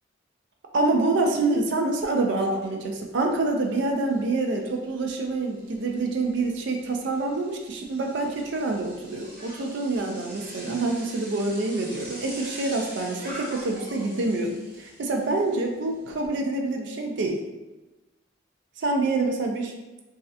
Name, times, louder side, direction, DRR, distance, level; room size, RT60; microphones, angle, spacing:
voice 1, 0.7-17.4 18.8-19.7, right 2 dB, 65° right, 2 dB, 0.4 m, -26 dB
Bicycle, 2.0-2.1 2.5-16.3, right 1 dB, 50° right, 1.0 m, -45 dB
3.1 x 2.4 x 2.6 m, 1.1 s
head